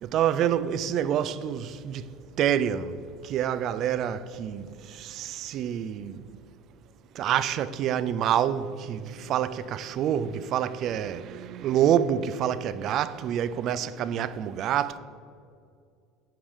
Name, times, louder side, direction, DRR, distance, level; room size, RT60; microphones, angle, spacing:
voice 1, 0.0-2.1 2.4-6.3 7.1-15.0, right 9 dB, 50° right, 0.4 m, -27 dB
11.5 x 4.9 x 3.6 m
supercardioid pair, 125°, 0 cm